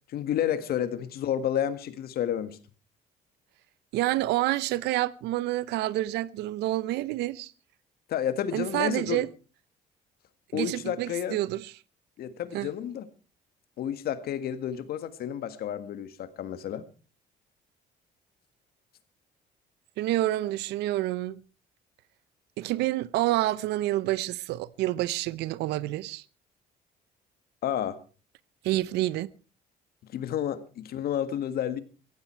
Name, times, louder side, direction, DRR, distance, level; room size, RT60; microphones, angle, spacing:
voice 1, 0.1-2.6 8.1-9.2 10.5-11.4 12.2-13.1 13.8-16.8 27.6-28.0 30.1-31.8, left 10 dB, 65° left, 1.8 m, -30 dB
voice 2, 3.9-7.5 8.5-9.3 10.5-11.7 12.5-12.7 20.0-21.4 22.6-26.2 28.6-29.3, right 16 dB, 85° right, 0.8 m, -28 dB
16.5 x 15.0 x 4.6 m
cardioid pair, 110°, 17 cm